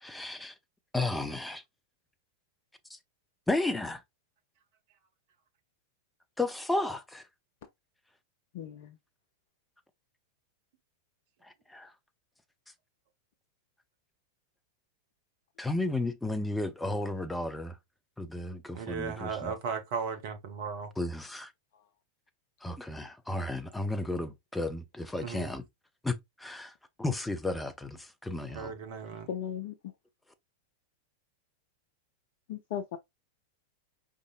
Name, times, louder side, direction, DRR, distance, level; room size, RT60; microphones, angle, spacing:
voice 1, 0.0-0.6 0.9-1.6 2.9-3.0 3.5-4.0 6.4-7.2 11.4-11.9 15.6-17.8 18.2-19.5 21.0-21.5 22.6-25.6 26.0-28.7, left 2 dB, 5° left, 0.7 m, -33 dB
voice 2, 8.5-8.9 29.3-29.7 32.5-33.0, left 9 dB, 50° left, 0.6 m, -36 dB
voice 3, 18.8-20.9 25.2-25.5 28.5-29.3, right 6 dB, 50° right, 1.2 m, -36 dB
5.1 x 3.7 x 2.5 m
figure-of-eight pair, 90°, 0 cm